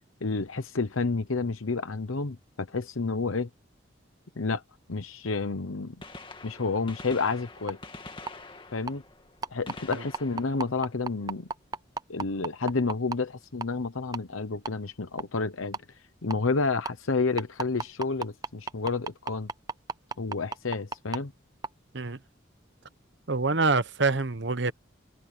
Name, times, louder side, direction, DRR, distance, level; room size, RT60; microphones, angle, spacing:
voice 1, 0.2-3.5 4.4-4.6 4.9-6.0 6.4-7.8 8.7-9.0 9.5-11.5 12.1-15.8 16.2-19.5 20.2-21.3, left 3 dB, 90° left, 1.0 m, -30 dB
Gunshot gunfire, 6.0-11.7 13.7-13.8 14.8-14.9 16.5-16.6 18.0-18.1 18.3-18.4, left 3 dB, 25° left, 2.1 m, -47 dB
sound 1, 7.7-7.8 8.3-8.4 8.9-9.0 9.4-13.2 13.6-13.7 14.1-14.2 14.6-14.7 15.2-15.3 15.7-15.8 16.3-16.4 16.8-16.9 17.4-21.2 21.6-21.7, right 4 dB, 20° right, 0.5 m, -31 dB
voice 2, 23.3-24.7, right 3 dB, 60° right, 1.0 m, -26 dB
open air
head